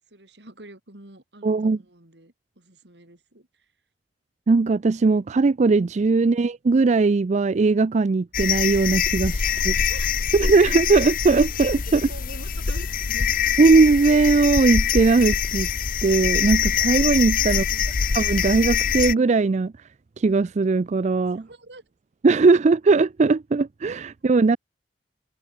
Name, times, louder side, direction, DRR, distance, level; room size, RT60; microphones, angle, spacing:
voice 1, 0.1-3.7 9.4-10.1 11.9-13.3 17.5-17.9 21.3-21.8, right 2 dB, 70° right, 3.9 m, -46 dB
voice 2, 1.4-1.8 4.5-9.7 10.3-12.0 13.6-15.7 16.0-17.6 18.1-19.7 20.2-21.5 22.2-24.6, right 3 dB, 40° right, 0.4 m, -19 dB
sound 1, 8.3-19.1, left 7 dB, 50° left, 0.7 m, -24 dB
open air
head